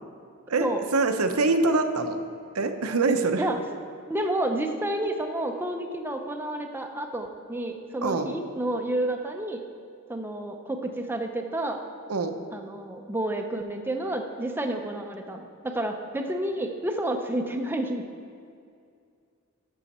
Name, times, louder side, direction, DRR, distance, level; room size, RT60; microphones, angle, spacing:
voice 1, 0.9-2.2 2.5-3.4 8.0-8.3 12.1-12.3, right 3 dB, 85° right, 7 dB, 0.7 m, -24 dB
voice 2, 4.1-9.6 10.1-11.8 12.5-18.0, right 1 dB, 10° right, 4 dB, 0.5 m, -30 dB
12.0 x 6.3 x 4.2 m, 2.3 s
head